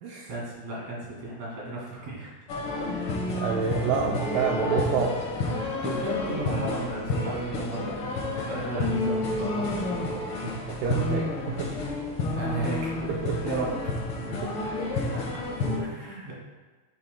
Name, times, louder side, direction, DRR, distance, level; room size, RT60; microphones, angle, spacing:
voice 1, 0.3-2.3 5.8-8.0 8.4-10.2 12.3-13.2 13.4-14.5 15.8-16.4, right 2 dB, 55° right, -5 dB, 3.5 m, -34 dB
sound 1, 2.5-15.8, left 2 dB, 60° left, 1.4 m, -30 dB
voice 2, 3.3-5.1 10.7-11.7 13.1-13.4 14.4-14.5, right 6 dB, 80° right, -1 dB, 2.2 m, -28 dB
9.6 x 8.5 x 2.3 m, 1.3 s
omnidirectional pair, 4.1 m